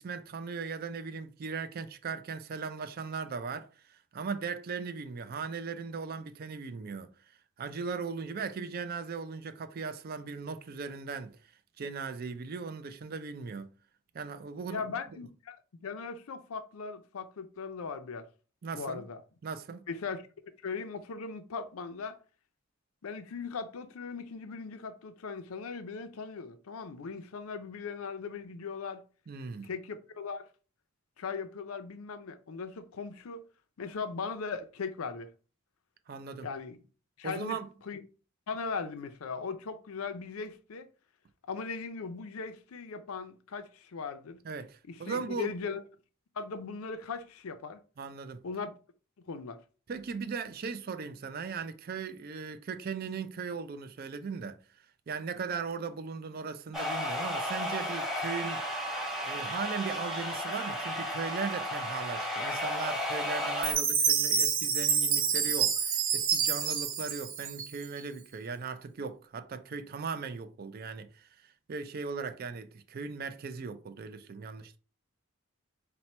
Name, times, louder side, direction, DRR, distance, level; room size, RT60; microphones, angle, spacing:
voice 1, 0.0-7.1 7.6-11.3 11.8-13.7 14.1-14.9 18.6-19.0 19.4-19.8 29.3-29.7 36.1-36.5 37.2-37.7 44.4-45.5 48.0-48.4 49.9-54.6 55.1-58.6 59.2-74.8, right 5 dB, 45° right, 0.4 m, -38 dB
voice 2, 14.7-18.3 18.7-19.2 19.9-20.2 20.6-22.2 23.0-29.0 29.6-30.5 31.2-33.5 33.8-35.3 36.4-36.8 37.2-37.6 37.9-38.0 38.5-40.9 41.5-44.4 44.9-45.8 46.4-47.8 48.4-48.7 49.3-49.6, left 5 dB, 80° left, 0.5 m, -38 dB
sound 1, 56.7-63.7, equal, ahead, 0.9 m, -33 dB
Chime, 63.6-68.0, right 7 dB, 65° right, 0.8 m, -28 dB
4.2 x 2.2 x 4.2 m
head